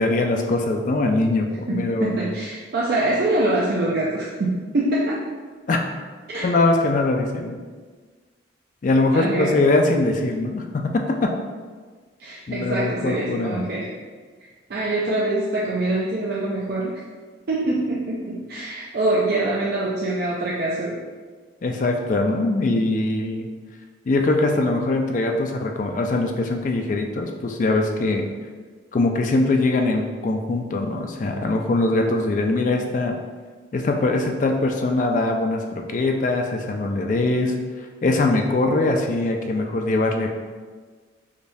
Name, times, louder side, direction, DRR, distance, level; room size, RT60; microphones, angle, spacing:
voice 1, 0.0-2.3 5.7-5.8 6.4-7.6 8.8-11.3 12.5-13.7 21.6-23.5 24.1-28.2 28.9-33.1 33.7-37.5 38.0-40.3, left 2 dB, 40° left, 3 dB, 0.3 m, -22 dB
voice 2, 1.7-5.3 6.3-6.5 9.1-9.6 12.2-13.9 14.4-17.0 17.5-21.0, right 2 dB, 50° right, -5 dB, 0.4 m, -24 dB
5.0 x 2.2 x 2.6 m, 1.5 s
head